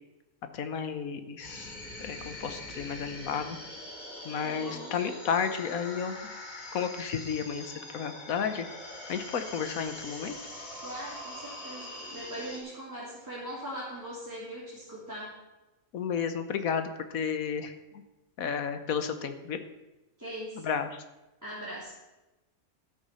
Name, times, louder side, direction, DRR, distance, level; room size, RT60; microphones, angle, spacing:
voice 1, 0.5-1.7 2.0-3.6 4.2-6.2 6.7-8.7 9.1-10.4 15.9-18.0 18.4-19.6 20.5-21.0, left 6 dB, 80° left, 9 dB, 1.5 m, -32 dB
sound 1, 1.4-12.6, left 1 dB, 35° left, 2.6 m, -43 dB
voice 2, 4.4-4.9 10.8-15.3 20.2-20.6 21.4-22.0, equal, 10° right, -9 dB, 3.3 m, -40 dB
12.5 x 8.2 x 5.6 m, 1.0 s
omnidirectional pair, 1.5 m